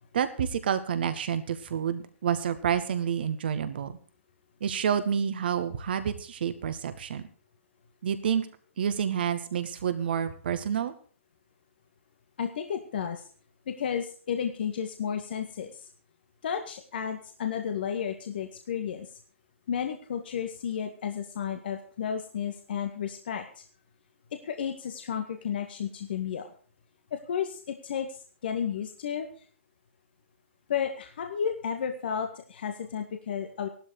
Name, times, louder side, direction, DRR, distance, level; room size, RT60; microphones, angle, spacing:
voice 1, 0.1-3.9 4.6-7.2 8.0-8.5 8.8-10.9, right 8 dB, 50° right, 10 dB, 2.0 m, -29 dB
voice 2, 12.4-13.2 13.7-15.9 16.4-19.1 19.7-23.6 24.4-26.5 27.1-29.3 30.7-33.7, left 8 dB, 50° left, 5 dB, 1.8 m, -32 dB
16.5 x 12.5 x 5.0 m, 0.43 s
figure-of-eight pair, 120°, 7 cm